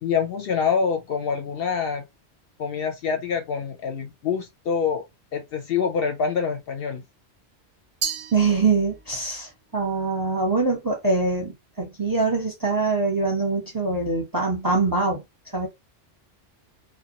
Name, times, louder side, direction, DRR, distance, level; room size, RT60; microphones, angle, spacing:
voice 1, 0.0-2.1 2.6-5.0 5.3-7.0, left 6 dB, 65° left, 0.7 m, -26 dB
Glass, 8.0-9.2, right 7 dB, 90° right, 0.9 m, -32 dB
voice 2, 8.3-15.2 15.5-15.7, right 3 dB, 25° right, 0.6 m, -23 dB
2.3 x 2.1 x 2.8 m
omnidirectional pair, 1.2 m